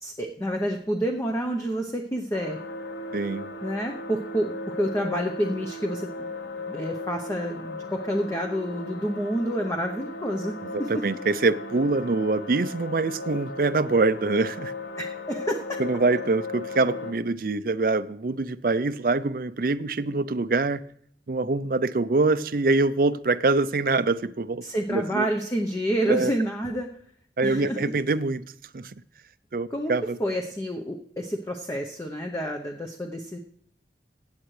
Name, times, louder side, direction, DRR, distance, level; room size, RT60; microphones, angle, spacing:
voice 1, 0.0-2.6 3.6-4.5 4.8-6.3 6.6-11.0 15.0-15.8 24.6-26.9 27.4-27.8 29.7-29.9 30.2-33.4, equal, 15° left, 0.8 m, -28 dB
sound 1, 2.3-17.1, left 2 dB, 75° left, 1.3 m, -36 dB
voice 2, 3.1-3.5 10.6-14.7 15.8-20.8 21.3-24.6 24.9-25.3 26.1-26.3 27.4-28.4 28.7-28.9 29.5-30.2, right 3 dB, 55° right, 0.5 m, -24 dB
16.5 x 8.9 x 3.2 m
head